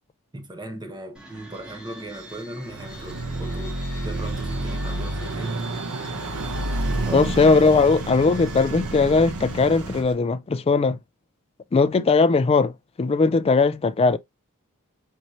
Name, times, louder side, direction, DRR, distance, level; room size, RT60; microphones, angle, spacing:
voice 1, 0.3-3.8 4.0-5.6 6.9-7.5, right 1 dB, 20° right, 1.1 m, -38 dB
sound 1, 1.1-10.1, right 1 dB, 5° right, 1.8 m, -43 dB
Car passing by / Accelerating revving vroom, 2.7-10.0, right 2 dB, 85° right, 0.8 m, -29 dB
voice 2, 7.1-11.0 11.7-12.7 13.0-14.2, left 4 dB, 25° left, 0.3 m, -19 dB
4.5 x 4.2 x 2.6 m
head